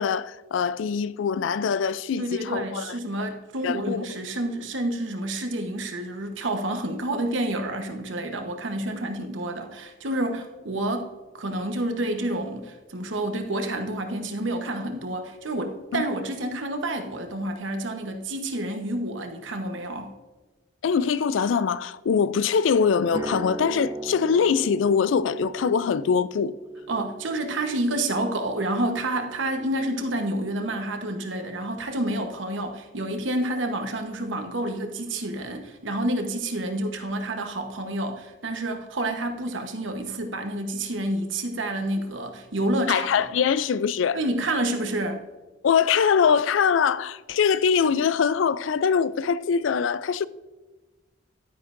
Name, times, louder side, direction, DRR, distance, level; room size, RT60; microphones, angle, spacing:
voice 1, 0.0-3.0 3.6-4.0 15.9-16.0 20.8-26.5 42.9-44.2 45.6-50.3, left 6 dB, 80° left, 0.4 m, -23 dB
voice 2, 2.2-20.1 26.9-43.2 44.1-45.3, right 1 dB, 80° right, 1.1 m, -29 dB
sound 1, 23.1-31.1, right 1 dB, 15° right, 0.3 m, -38 dB
11.0 x 9.5 x 2.6 m
head